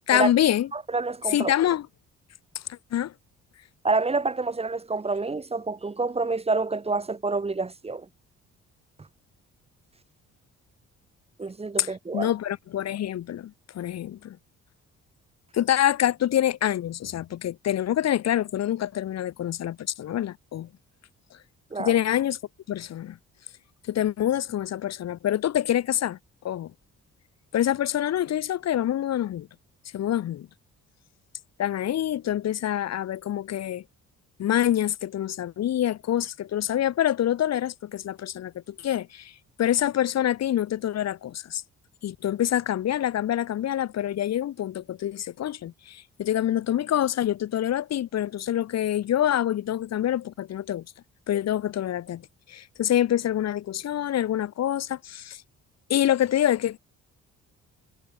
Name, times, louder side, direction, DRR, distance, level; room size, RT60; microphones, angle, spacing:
voice 1, 0.1-0.7 1.3-1.9 2.7-3.1 11.8-11.9 12.1-14.4 15.5-20.7 21.8-22.4 22.7-23.2 23.9-26.2 26.4-26.7 27.5-29.5 29.9-30.5 31.6-33.8 34.4-38.5 38.8-39.3 39.6-41.6 42.0-50.8 51.3-52.2 52.5-55.4 55.9-56.8, left 11 dB, 60° left, 1.0 m, -26 dB
voice 2, 0.7-1.5 3.8-8.1 11.4-12.3 21.7-21.9, right 3 dB, 20° right, 1.2 m, -28 dB
cardioid pair, 90°, 30 cm